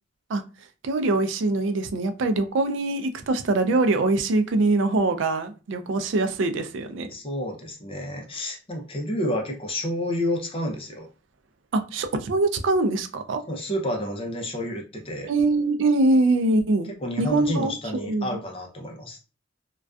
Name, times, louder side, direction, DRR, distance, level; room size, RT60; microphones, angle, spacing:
voice 1, 0.8-7.1 11.7-13.4 15.3-16.9 17.2-17.8 18.0-18.3, right 2 dB, 80° right, 0.4 m, -23 dB
voice 2, 7.1-11.1 13.5-15.3 17.0-19.2, left 1 dB, 30° left, 0.5 m, -30 dB
2.4 x 2.2 x 2.3 m
head